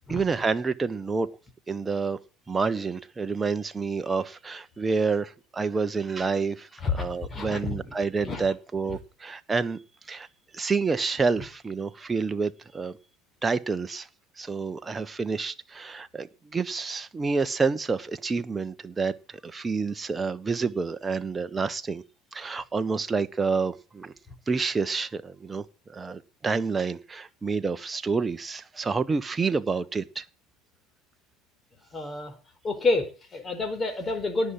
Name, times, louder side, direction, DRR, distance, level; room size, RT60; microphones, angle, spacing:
voice 1, 0.1-1.3 1.7-2.2 2.5-9.8 10.1-10.3 10.5-12.9 13.4-14.1 14.4-22.0 22.3-24.1 24.5-30.2, right 4 dB, 20° right, 11 dB, 1.3 m, -28 dB
voice 2, 7.3-7.9 8.2-8.5 31.9-32.3 32.6-34.5, left 3 dB, 25° left, 8 dB, 4.5 m, -28 dB
18.0 x 7.3 x 7.7 m, 0.35 s
hypercardioid pair, 70°, 0 cm